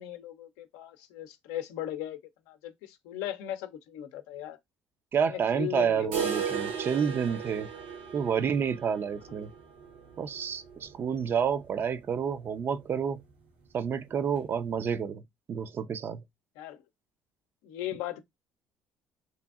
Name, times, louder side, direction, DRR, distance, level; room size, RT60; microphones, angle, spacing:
voice 1, 0.0-2.2 2.5-4.6 5.3-6.2 16.6-16.8 17.6-18.2, left 12 dB, 80° left, 0.5 m, -38 dB
voice 2, 5.1-7.7 8.1-9.5 10.2-13.2 13.7-15.2 15.5-16.2, right 7 dB, 45° right, 0.4 m, -29 dB
sound 1, 6.1-11.9 12.2-12.3 12.7-12.8 13.3-13.4 14.2-14.3, right 6 dB, 90° right, 1.2 m, -37 dB
2.8 x 2.6 x 2.3 m
supercardioid pair, 75°, 5 cm